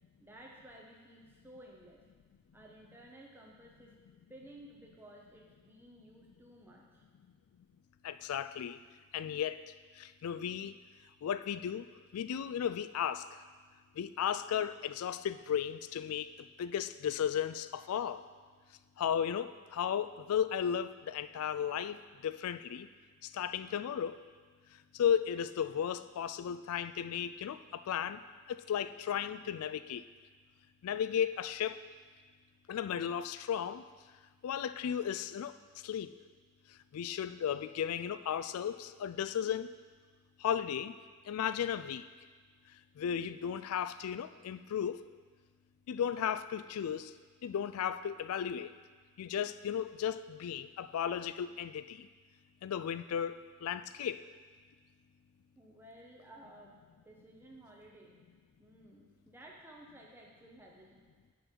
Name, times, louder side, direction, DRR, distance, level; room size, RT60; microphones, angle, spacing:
voice 1, 0.2-2.0 2.5-3.9 4.3-7.0 55.6-56.8 57.0-58.2 58.6-61.0, right 1 dB, 10° right, -2 dB, 0.8 m, -55 dB
voice 2, 8.0-8.8 9.1-9.6 10.0-10.7 11.2-11.9 12.1-13.2 14.0-16.3 16.6-18.2 19.0-22.9 23.3-24.2 24.9-28.2 28.5-30.1 30.8-31.8 32.7-33.8 34.4-35.5 35.8-36.1 36.9-39.7 40.4-40.9 41.3-42.1 43.0-45.0 45.9-47.1 47.4-48.7 49.2-52.1 52.6-54.2, left 8 dB, 85° left, 14 dB, 0.3 m, -35 dB
10.0 x 3.9 x 4.6 m, 1.5 s
head